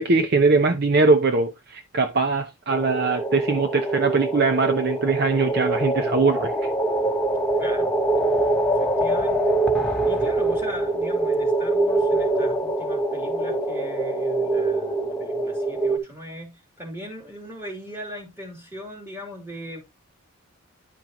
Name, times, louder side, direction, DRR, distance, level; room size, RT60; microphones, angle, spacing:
voice 1, 0.0-6.6, right 3 dB, 50° right, 0.7 m, -21 dB
sound 1, 2.7-16.0, right 2 dB, 5° left, 1.1 m, -24 dB
voice 2, 7.5-8.0 8.4-19.8, equal, 10° right, 2.7 m, -39 dB
10.5 x 5.4 x 3.0 m
head